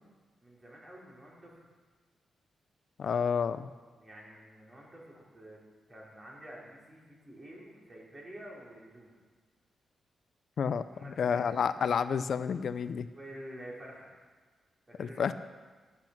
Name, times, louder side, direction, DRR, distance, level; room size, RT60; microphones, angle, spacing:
voice 1, 0.4-1.6 3.9-5.6 5.9-9.2 10.9-11.6 13.1-14.1 14.9-15.3, right 1 dB, 30° right, -4 dB, 4.0 m, -49 dB
voice 2, 3.0-3.7 10.6-13.1 15.0-15.3, left 6 dB, 65° left, 12 dB, 0.4 m, -30 dB
12.0 x 8.4 x 5.9 m, 1.4 s
cardioid pair, 85°, 0 cm